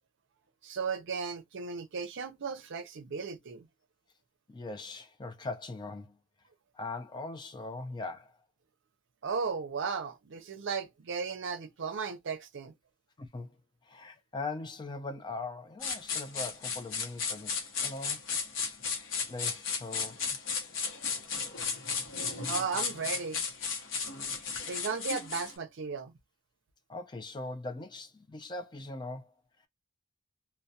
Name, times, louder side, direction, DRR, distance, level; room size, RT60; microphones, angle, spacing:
voice 1, 0.6-3.7 9.2-12.7 22.5-23.4 24.7-26.1, right 5 dB, 65° right, 0.5 m, -35 dB
voice 2, 4.5-6.1 6.7-8.3 13.2-13.6 13.9-17.5 17.8-18.2 19.3-20.3 26.9-29.3, left 2 dB, 20° left, 0.4 m, -40 dB
sound 1, 15.8-25.5, left 5 dB, 65° left, 0.7 m, -35 dB
2.2 x 2.1 x 2.6 m
head